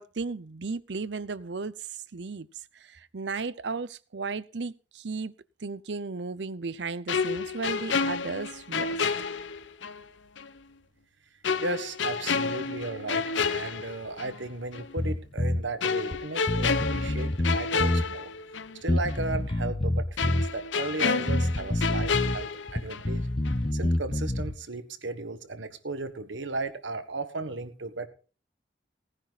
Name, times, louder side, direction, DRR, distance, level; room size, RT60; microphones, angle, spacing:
voice 1, 0.0-2.5 2.7-5.3 5.6-9.0, right 4 dB, 70° right, 0.7 m, -35 dB
sound 1, 7.1-10.0 10.4-10.5 11.4-14.4 14.7-14.9 15.8-18.8 19.1-19.2 20.2-23.2 23.5-23.7, left 5 dB, 90° left, 0.8 m, -30 dB
voice 2, 11.6-18.3 18.8-23.3 23.7-28.1, right 3 dB, 85° right, 1.5 m, -35 dB
Bass guitar, 15.0-15.6 16.1-16.2 16.5-18.1 18.9-20.5 21.3-22.4 22.7-24.5, left 1 dB, 30° left, 0.8 m, -27 dB
18.0 x 9.9 x 4.1 m
head